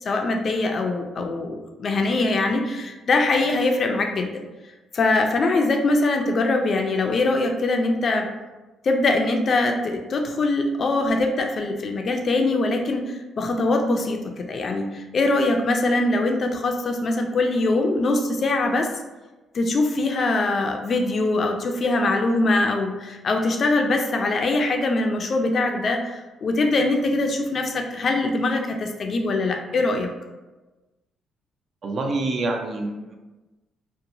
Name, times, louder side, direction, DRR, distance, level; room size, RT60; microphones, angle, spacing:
voice 1, 0.0-4.4 4.9-8.3 8.8-18.9 19.5-30.1, left 2 dB, 50° left, 4 dB, 0.4 m, -22 dB
voice 2, 31.8-33.1, right 2 dB, 50° right, 3 dB, 0.4 m, -26 dB
2.9 x 2.1 x 2.6 m, 1.1 s
cardioid pair, 90°, 0 cm